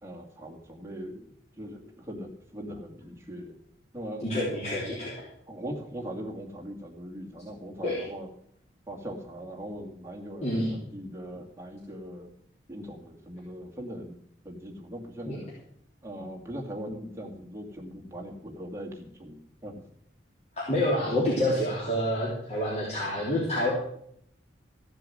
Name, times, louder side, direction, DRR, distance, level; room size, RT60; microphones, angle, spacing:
voice 1, 0.0-1.3 1.6-3.5 3.9-4.3 4.9-5.0 5.5-8.3 8.9-12.3 12.7-14.2 14.4-15.5 16.0-19.8, equal, 15° right, -1 dB, 2.3 m, -40 dB
voice 2, 4.2-5.1 7.8-8.1 10.4-10.7 15.3-15.4 20.6-23.7, left 1 dB, 35° left, -5 dB, 3.2 m, -27 dB
15.0 x 7.6 x 7.6 m, 0.70 s
head